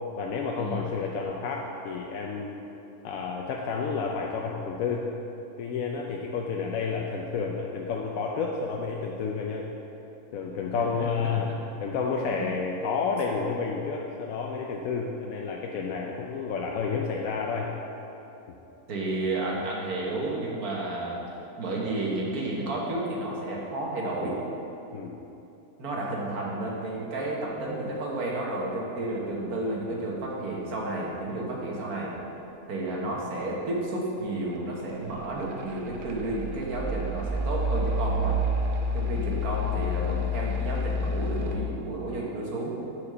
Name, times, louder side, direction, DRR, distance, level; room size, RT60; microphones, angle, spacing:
voice 1, 0.2-2.6 3.0-5.1 5.6-9.7 10.3-11.5 11.8-17.7 24.9-25.2, left 5 dB, 70° left, 0 dB, 1.0 m, -30 dB
voice 2, 10.8-11.1 12.3-12.5 18.9-21.2 21.6-24.4 25.8-32.2 32.7-38.4 38.9-42.8, right 2 dB, 75° right, -3 dB, 1.7 m, -31 dB
sound 1, 35.2-41.6, left 1 dB, 50° right, 0.6 m, -29 dB
7.0 x 4.9 x 6.7 m, 3.0 s
omnidirectional pair, 1.6 m